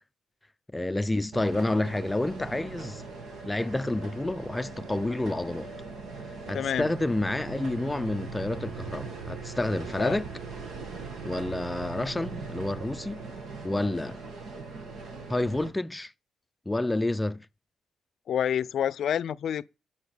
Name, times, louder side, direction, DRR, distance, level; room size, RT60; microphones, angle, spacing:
voice 1, 0.7-3.0 3.5-5.7 6.5-10.3 11.2-13.2 13.6-14.2 15.3-16.1 16.7-17.5, left 2 dB, 10° left, 0.5 m, -29 dB
sound 1, 1.3-15.7, right 4 dB, 70° right, 2.5 m, -40 dB
voice 2, 6.5-6.9 10.0-10.2 18.3-19.7, left 9 dB, 65° left, 0.5 m, -28 dB
11.5 x 5.7 x 5.1 m
cardioid pair, 90°, 0 cm